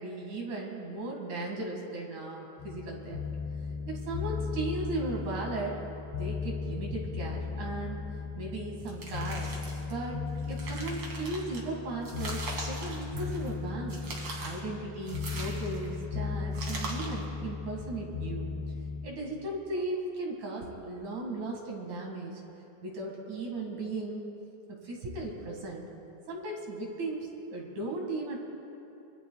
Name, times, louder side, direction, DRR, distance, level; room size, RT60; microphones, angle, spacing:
voice 1, 0.0-3.2 3.9-5.8 6.1-8.0 8.4-9.5 9.9-10.2 10.5-18.5 19.0-22.4 22.8-24.2 24.7-25.8 26.3-28.4, right 2 dB, 55° right, -1 dB, 3.2 m, -36 dB
sound 1, 2.6-19.1, left 5 dB, 80° left, 1.4 m, -36 dB
sound 2, 8.8-9.9 10.3-11.6 12.0-13.5 13.9-14.6 15.1-15.9 16.5-17.2, right 2 dB, 40° right, 2.7 m, -41 dB
25.5 x 23.0 x 2.3 m, 2.9 s
omnidirectional pair, 4.5 m